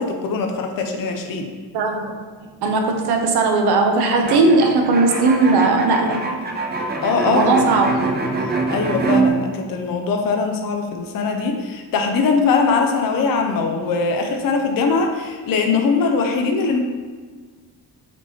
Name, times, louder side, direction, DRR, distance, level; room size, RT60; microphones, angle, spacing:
voice 1, 0.0-1.5 7.0-7.7 8.7-16.8, left 4 dB, 60° left, 3 dB, 0.6 m, -21 dB
voice 2, 1.7-2.2 2.6-6.2 7.3-8.0, right 3 dB, 75° right, 3 dB, 0.7 m, -17 dB
sound 1, 4.2-9.3, right 3 dB, 25° right, 0.4 m, -24 dB
4.4 x 2.9 x 4.2 m, 1.5 s
wide cardioid pair, 145°, 39 cm